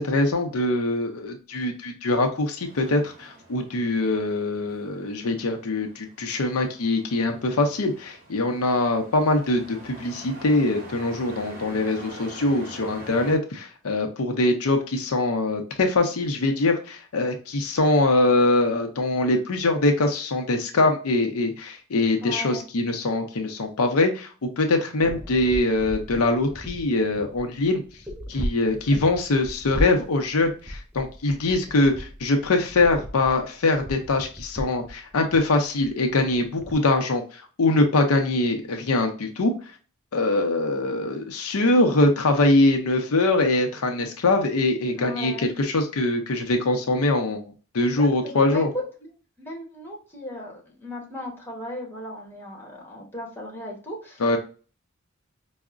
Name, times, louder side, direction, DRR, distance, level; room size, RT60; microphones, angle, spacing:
voice 1, 0.0-27.8 28.3-39.5 40.1-47.4 47.7-48.7 54.2-54.4, left 2 dB, 85° left, 4 dB, 0.6 m, -23 dB
Truck, 2.3-13.4, right 1 dB, 40° right, 1.6 m, -45 dB
voice 2, 22.2-22.6 44.9-45.5 47.8-49.1 49.4-54.4, left 1 dB, 10° left, -1 dB, 1.0 m, -36 dB
sound 1, 25.0-36.7, equal, 5° right, 0.4 m, -36 dB
4.6 x 2.1 x 2.4 m, 0.38 s
head